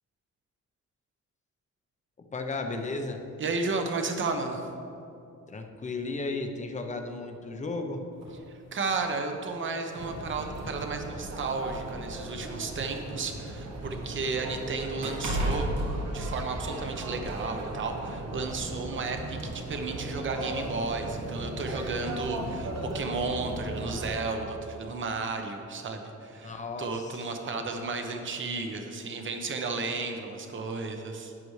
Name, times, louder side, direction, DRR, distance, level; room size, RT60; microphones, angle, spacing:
voice 1, 2.2-3.2 5.5-8.0 18.6-18.7 26.4-27.2 27.5-27.7, left 3 dB, 25° left, 5 dB, 0.7 m, -35 dB
voice 2, 3.4-4.7 8.7-15.7 16.1-31.3, right 3 dB, 40° right, 4 dB, 1.0 m, -33 dB
sound 1, 8.2-8.4 9.4-9.5 10.0-10.1 11.1-13.0 13.4-16.8 17.2-17.4, right 1 dB, 90° right, 2.4 m, -33 dB
sound 2, 9.9-24.1, right 2 dB, 60° right, 1.3 m, -37 dB
12.0 x 9.3 x 3.2 m, 2.7 s
wide cardioid pair, 160°, 30 cm